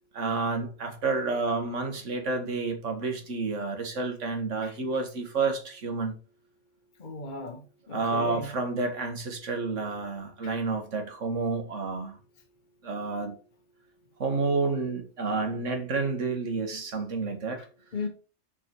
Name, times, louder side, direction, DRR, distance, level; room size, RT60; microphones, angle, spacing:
voice 1, 0.1-6.1 7.9-12.1 12.8-13.4 14.2-17.6, right 4 dB, 85° right, 1.8 m, -30 dB
voice 2, 7.0-8.5 10.4-10.6 17.9-18.1, left 3 dB, 40° left, 1.3 m, -37 dB
6.7 x 4.6 x 4.5 m
omnidirectional pair, 1.2 m